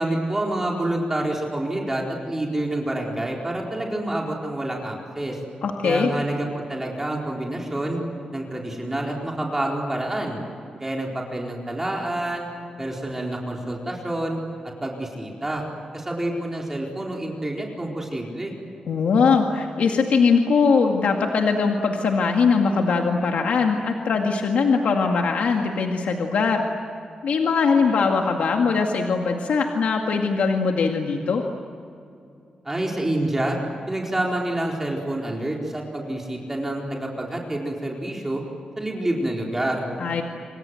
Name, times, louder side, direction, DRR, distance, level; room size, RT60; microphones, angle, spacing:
voice 1, 0.0-5.4 5.8-8.0 8.3-10.4 10.8-12.5 12.8-14.4 14.8-15.6 15.9-18.5 32.6-33.6 33.9-38.4 38.8-39.9, right 1 dB, 15° right, -1 dB, 4.4 m, -27 dB
voice 2, 5.6-6.1 18.9-26.6 27.2-31.4 40.0-40.2, left 5 dB, 90° left, 2 dB, 2.1 m, -21 dB
28.0 x 25.5 x 7.8 m, 2.6 s
wide cardioid pair, 125°, 2 cm